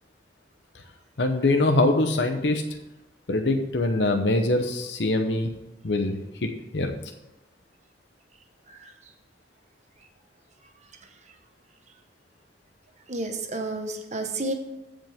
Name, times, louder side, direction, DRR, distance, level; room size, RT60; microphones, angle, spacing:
voice 1, 1.2-2.6 3.3-5.5 5.8-6.9, left 2 dB, 80° left, 5 dB, 0.9 m, -23 dB
voice 2, 8.7-9.1 13.1-14.5, right 2 dB, 45° right, 5 dB, 1.2 m, -31 dB
15.0 x 5.2 x 3.6 m, 0.97 s
head